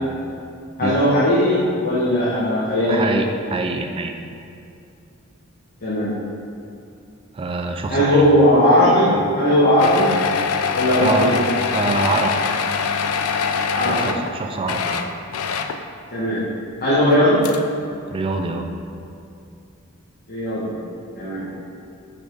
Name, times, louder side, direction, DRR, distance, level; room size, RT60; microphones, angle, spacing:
voice 1, 0.8-3.0 5.8-6.1 7.9-10.1 10.7-11.3 13.7-14.0 16.1-16.4 16.8-17.4 20.3-20.7 21.1-21.5, left 1 dB, 45° left, -9 dB, 1.2 m, -17 dB
voice 2, 2.9-4.1 7.3-8.2 9.1-9.2 11.0-11.4 11.7-12.4 13.9-15.0 18.1-18.7, right 3 dB, 25° right, 4 dB, 0.3 m, -25 dB
sound 1, 9.8-14.3 14.6-15.8 17.1-17.2 17.4-17.6, left 5 dB, 85° left, 0.4 m, -23 dB
5.0 x 4.5 x 4.6 m, 2.5 s
head